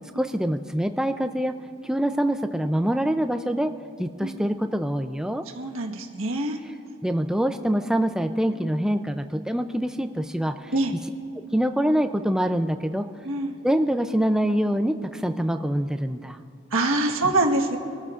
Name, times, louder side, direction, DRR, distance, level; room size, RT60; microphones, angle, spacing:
voice 1, 0.2-1.5 1.8-3.7 4.0-5.4 7.0-10.7 11.5-13.0 13.6-16.4, equal, 5° right, 7 dB, 0.4 m, -25 dB
voice 2, 5.6-6.6 10.7-10.9 13.2-13.5 16.7-17.8, right 2 dB, 80° right, 2 dB, 1.4 m, -24 dB
25.5 x 14.0 x 2.5 m, 2.4 s
head